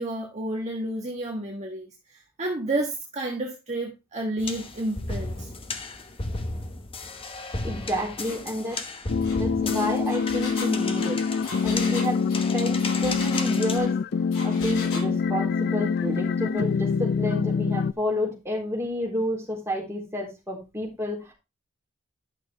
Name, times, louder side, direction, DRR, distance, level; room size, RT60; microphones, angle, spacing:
voice 1, 0.0-1.9 2.4-5.5, right 1 dB, 30° right, 1.5 m, -30 dB
sound 1, 4.4-13.8, left 3 dB, 25° left, 1.0 m, -35 dB
voice 2, 7.6-8.8 9.3-11.2 11.6-12.2 12.5-14.0 14.4-21.3, equal, 10° right, 3.9 m, -30 dB
Engine, 8.2-8.4 8.7-8.9 9.2-13.9 14.3-15.1, left 3 dB, 90° left, 7.0 m, -38 dB
sound 2, 9.1-17.9, left 5 dB, 50° left, 0.4 m, -25 dB
11.0 x 6.5 x 3.4 m
head